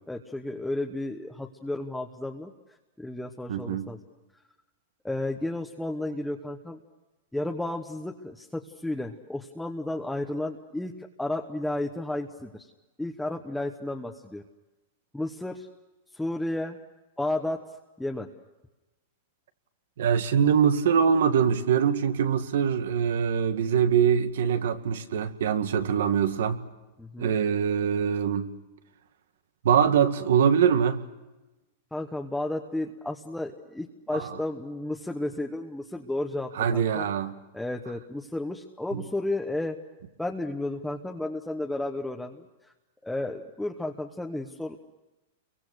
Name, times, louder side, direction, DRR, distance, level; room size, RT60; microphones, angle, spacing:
voice 1, 0.1-2.5 3.0-4.0 5.0-6.8 7.3-12.7 13.0-14.4 15.1-15.7 16.1-16.8 17.2-17.6 18.0-18.3 27.0-27.3 31.9-37.1 37.5-39.8 40.2-42.4 43.0-44.8, left 1 dB, 5° left, 1.1 m, -32 dB
voice 2, 3.5-3.9 20.0-26.6 27.2-28.5 29.6-31.0 34.1-34.4 36.6-37.3 38.9-39.0, right 7 dB, 80° right, 2.0 m, -23 dB
30.0 x 24.0 x 6.5 m
supercardioid pair, 155°, 0 cm